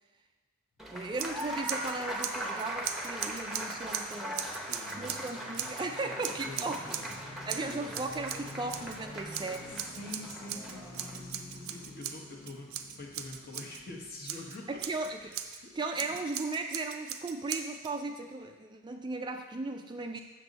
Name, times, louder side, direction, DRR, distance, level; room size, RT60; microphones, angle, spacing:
sound 1, 0.8-16.0 16.2-16.3, left 1 dB, 70° left, 1.2 m, -52 dB
Applause, 0.8-11.2, equal, ahead, 0.8 m, -40 dB
voice 1, 0.9-4.6 5.0-6.8 7.5-9.9 14.7-15.3 15.7-20.2, right 3 dB, 20° right, 5 dB, 0.3 m, -36 dB
Scissors, 1.1-1.9 2.2-5.8 6.2-7.2 7.5-9.0 9.3-13.8 14.2-15.6 15.9-17.9, right 9 dB, 75° right, 0.5 m, -39 dB
voice 2, 4.7-5.2 6.0-7.2 7.6-8.1 9.7-14.8 15.2-15.7 16.0-16.2 20.1-20.2, left 2 dB, 45° left, 0 dB, 1.2 m, -46 dB
7.9 x 6.4 x 4.0 m, 1.2 s
head